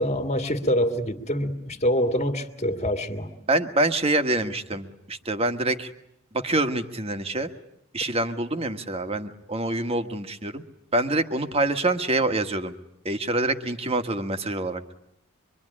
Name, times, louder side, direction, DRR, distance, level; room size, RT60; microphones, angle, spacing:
voice 1, 0.0-3.3, equal, 35° left, 2.2 m, -25 dB
voice 2, 3.5-5.9 6.3-7.5 7.9-10.6 10.9-12.7 13.0-14.8, right 2 dB, 30° right, 1.5 m, -26 dB
25.0 x 24.0 x 9.9 m
head